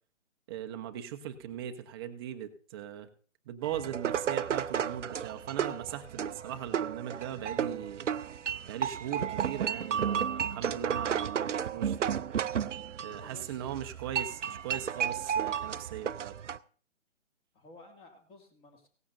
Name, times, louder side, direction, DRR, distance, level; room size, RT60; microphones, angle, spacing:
voice 1, 0.5-3.1 3.5-8.1 8.7-12.2 13.0-16.3, right 10 dB, 20° right, 6 dB, 0.8 m, -39 dB
sound 1, 3.6-16.6, right 8 dB, 75° right, 0.6 m, -33 dB
voice 2, 13.1-13.7 17.5-18.9, left 2 dB, 15° left, 4 dB, 2.0 m, -54 dB
17.5 x 14.5 x 2.6 m, 0.41 s
hypercardioid pair, 145°, 37 cm